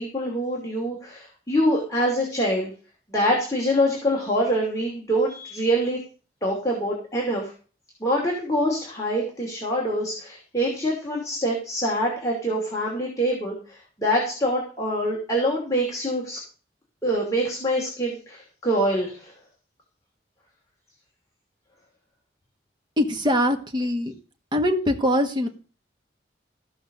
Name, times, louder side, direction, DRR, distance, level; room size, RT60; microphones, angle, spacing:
voice 1, 0.0-2.7 3.1-6.0 6.4-7.5 8.0-16.4 17.0-19.3, equal, 20° left, -2 dB, 2.7 m, -25 dB
voice 2, 23.0-24.1 24.5-25.5, left 1 dB, 25° right, 5 dB, 1.5 m, -22 dB
15.0 x 5.8 x 6.7 m, 0.38 s
head